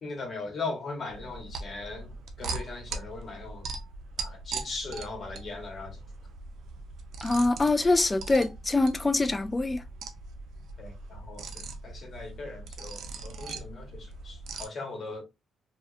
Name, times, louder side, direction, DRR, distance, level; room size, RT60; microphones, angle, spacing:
voice 1, 0.0-3.6 4.2-6.0 10.8-15.2, left 3 dB, 50° left, 1.0 m, -39 dB
sound 1, 1.1-14.6, right 3 dB, 75° right, 0.5 m, -40 dB
voice 2, 7.2-9.8, left 2 dB, 20° left, 0.3 m, -24 dB
2.5 x 2.2 x 2.4 m
cardioid pair, 90°, 0 cm